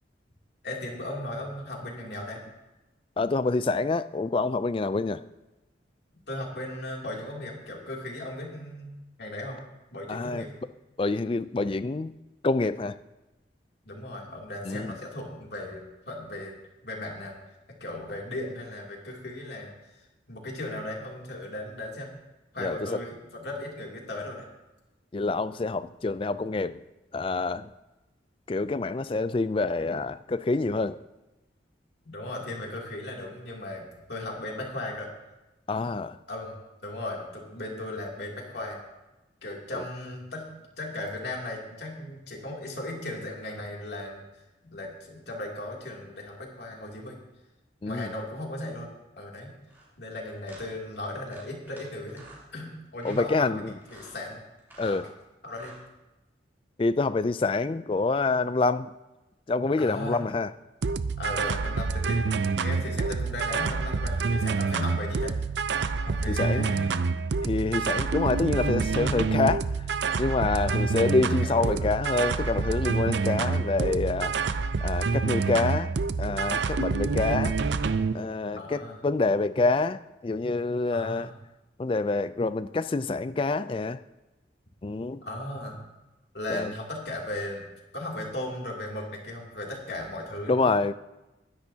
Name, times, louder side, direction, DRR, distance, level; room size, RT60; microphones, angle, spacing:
voice 1, 0.6-2.4 6.3-8.9 9.2-9.6 9.9-10.5 13.8-17.4 17.8-22.1 22.5-24.5 32.0-35.1 36.3-36.6 36.8-38.8 39.4-40.5 40.8-44.2 44.6-47.2 47.8-48.9 49.2-49.5 50.0-52.2 52.5-54.4 54.8-55.1 55.4-55.7 59.8-60.2 61.2-62.3 62.6-65.3 66.0-66.9 70.5-70.9 71.3-71.9 78.6-79.0 80.9-81.3 85.2-85.8 86.3-87.7 87.9-90.7, left 1 dB, 60° left, -1 dB, 2.8 m, -37 dB
voice 2, 3.2-5.2 10.1-10.4 11.0-12.1 12.4-13.0 14.7-14.9 22.6-22.8 25.1-26.8 27.1-27.7 28.5-31.0 35.7-36.2 39.7-39.8 47.8-48.1 53.0-53.7 54.8-55.0 56.8-58.9 59.5-60.5 66.2-66.7 67.4-69.6 70.2-74.4 74.8-75.9 76.2-77.6 78.1-81.3 81.8-84.0 84.8-85.2 86.5-86.7 90.5-90.9, left 3 dB, 30° left, 14 dB, 0.3 m, -27 dB
sound 1, 49.7-49.9 50.4-50.7 51.3-51.8 52.1-52.5 53.0-53.3 53.8-54.2 54.6-55.0 55.5-55.8, right 2 dB, 10° right, 3.1 m, -50 dB
sound 2, 60.8-78.1, right 4 dB, 70° right, 0.5 m, -27 dB
20.5 x 10.5 x 2.8 m, 1.0 s
head